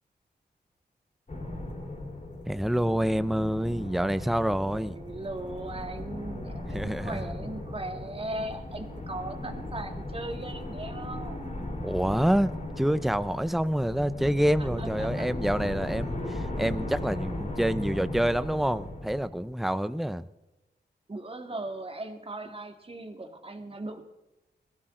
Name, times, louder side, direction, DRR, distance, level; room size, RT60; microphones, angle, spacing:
sound 1, 1.3-19.7, left 1 dB, 45° left, 4.3 m, -37 dB
voice 1, 2.5-5.0 6.7-7.2 11.8-20.2, equal, ahead, 14 dB, 0.7 m, -27 dB
voice 2, 4.7-11.4 14.8-15.3 21.1-24.0, right 2 dB, 30° right, 5 dB, 2.1 m, -38 dB
21.5 x 16.0 x 3.8 m, 1.0 s
wide cardioid pair, 75°, 18 cm